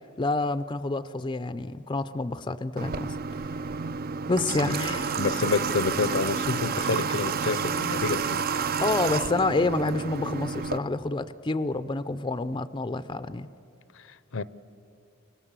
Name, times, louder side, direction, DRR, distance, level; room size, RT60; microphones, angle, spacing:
voice 1, 0.2-3.2 4.3-5.2 8.8-13.5, left 2 dB, 20° left, 0.5 m, -28 dB
Water / Water tap faucet, 2.8-10.8, right 5 dB, 45° right, 0.5 m, -30 dB
voice 2, 4.6-8.5 14.0-14.4, left 4 dB, 65° left, 0.7 m, -29 dB
25.5 x 25.0 x 7.4 m
head